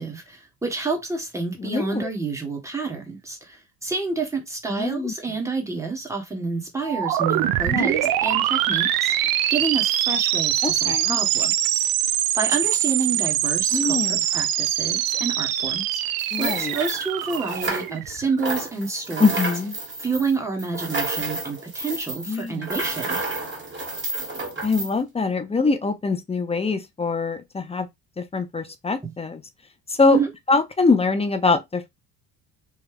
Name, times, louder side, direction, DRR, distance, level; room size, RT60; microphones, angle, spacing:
voice 1, 0.0-11.9 12.4-16.0 16.4-19.3 20.0-23.2 29.0-29.1 30.1-30.3, right 4 dB, 5° right, 1.4 m, -29 dB
voice 2, 1.6-2.1 4.7-5.1 7.7-7.9 10.6-11.2 13.7-14.3 16.3-16.7 19.2-19.8 22.3-22.7 24.6-27.9 28.2-29.4 29.9-30.2 30.5-31.9, left 4 dB, 15° left, 0.5 m, -23 dB
sound 1, 6.8-18.5, right 12 dB, 60° right, 0.5 m, -23 dB
sound 2, 16.2-18.1 18.4-24.9, right 3 dB, 30° right, 2.1 m, -30 dB
3.2 x 2.3 x 3.3 m
supercardioid pair, 75°, 40 cm